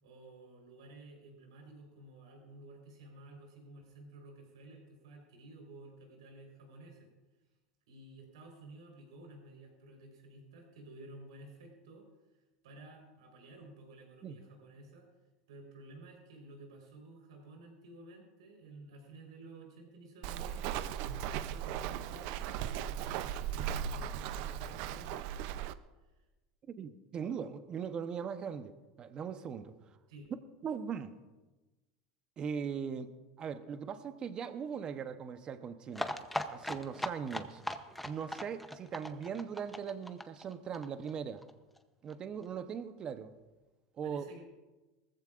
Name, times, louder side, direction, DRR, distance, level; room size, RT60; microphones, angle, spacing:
voice 1, 0.0-7.1 7.9-12.0 12.6-15.1 15.5-20.9 21.2-25.6 30.1-30.3 44.0-44.4, right 2 dB, 90° right, 1 dB, 4.1 m, -53 dB
Walk footsteps, 20.2-25.7, right 9 dB, 60° right, 0.5 m, -37 dB
voice 2, 26.7-29.7 30.6-31.1 32.4-36.1 36.5-37.6 38.0-41.4 42.0-43.3 44.0-44.3, right 7 dB, 30° right, 10 dB, 0.9 m, -40 dB
sound 1, 35.9-41.5 41.8-41.9 42.1-42.2 42.4-42.5, left 1 dB, 5° left, 0.7 m, -39 dB
19.5 x 14.5 x 2.5 m, 1.2 s
supercardioid pair, 130°, 3 cm